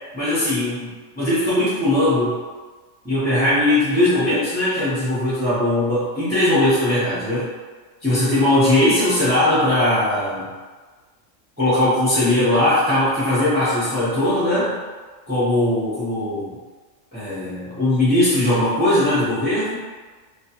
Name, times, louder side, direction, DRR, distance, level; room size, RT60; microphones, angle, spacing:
voice 1, 0.1-2.4 3.0-7.5 8.0-10.5 11.6-14.8 15.3-16.5 17.1-19.8, left 1 dB, 10° right, -12 dB, 0.6 m, -19 dB
2.3 x 2.2 x 2.8 m, 1.4 s
omnidirectional pair, 1.3 m